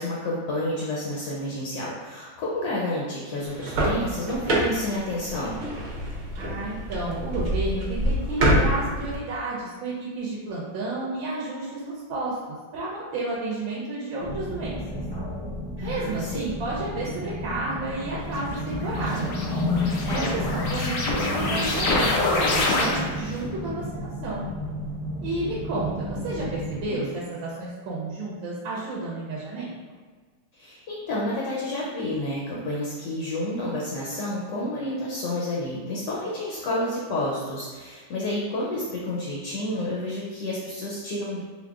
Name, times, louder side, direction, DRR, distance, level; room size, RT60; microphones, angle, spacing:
voice 1, 0.0-5.6 15.8-16.4 20.0-20.3 26.9-27.1 30.5-41.4, left 1 dB, 70° left, -5 dB, 1.1 m, -30 dB
sound 1, 3.4-9.1, right 1 dB, 60° right, 0.9 m, -26 dB
voice 2, 6.4-12.4 12.7-14.8 15.8-19.3 20.1-24.5 25.2-29.7, right 2 dB, 85° right, -6 dB, 1.5 m, -31 dB
sound 2, 14.2-26.8, left 1 dB, 15° left, 0.3 m, -32 dB
sound 3, 18.4-23.3, left 2 dB, 85° left, 0.7 m, -26 dB
3.6 x 3.5 x 2.4 m, 1.5 s
omnidirectional pair, 2.2 m